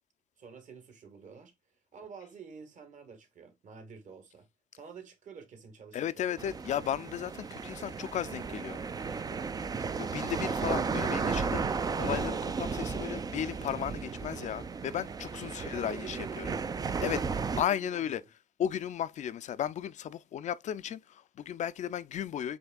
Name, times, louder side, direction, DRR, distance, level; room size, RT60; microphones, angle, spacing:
voice 1, 0.4-1.5 1.9-4.5 4.7-6.3 15.5-16.8 17.4-18.3, right 6 dB, 45° right, 1.6 m, -48 dB
voice 2, 5.9-8.8 10.0-16.5 17.0-17.3 17.6-18.2 18.6-22.6, left 10 dB, 45° left, 0.4 m, -35 dB
sound 1, 6.4-17.6, right 5 dB, 20° right, 0.4 m, -34 dB
8.0 x 2.8 x 2.2 m
cardioid pair, 110°, 17 cm